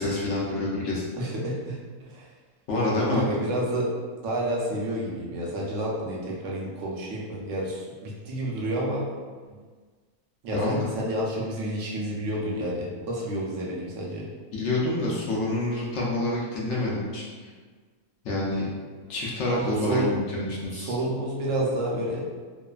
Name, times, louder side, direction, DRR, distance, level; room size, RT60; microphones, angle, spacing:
voice 1, 0.0-1.0 2.7-3.3 10.5-10.8 14.5-17.5 18.2-18.7 19.1-20.9, left 2 dB, 65° left, -5 dB, 0.8 m, -27 dB
voice 2, 1.2-1.8 2.1-2.3 3.1-3.9 4.2-9.1 9.5-9.6 10.4-14.3 19.5-20.1 20.8-22.2, right 1 dB, 65° right, -3 dB, 0.9 m, -29 dB
2.9 x 2.1 x 2.3 m, 1.5 s
omnidirectional pair, 1.5 m